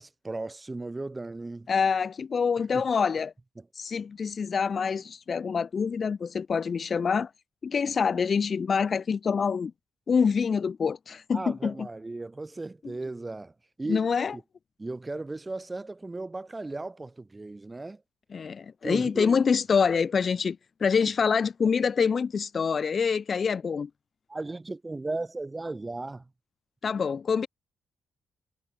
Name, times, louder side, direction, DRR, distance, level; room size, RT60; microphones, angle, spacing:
voice 1, 0.0-1.7 2.7-2.8 3.6-3.7 11.3-13.5 13.8-14.4 14.8-18.0 18.8-19.4 24.3-26.3, right 2 dB, 25° right, 7.0 m, -36 dB
voice 2, 1.7-3.3 3.8-7.3 7.6-9.7 10.1-11.9 13.9-14.4 18.3-23.9 26.8-27.5, left 6 dB, 50° left, 1.2 m, -26 dB
supercardioid pair, 65°, 0 cm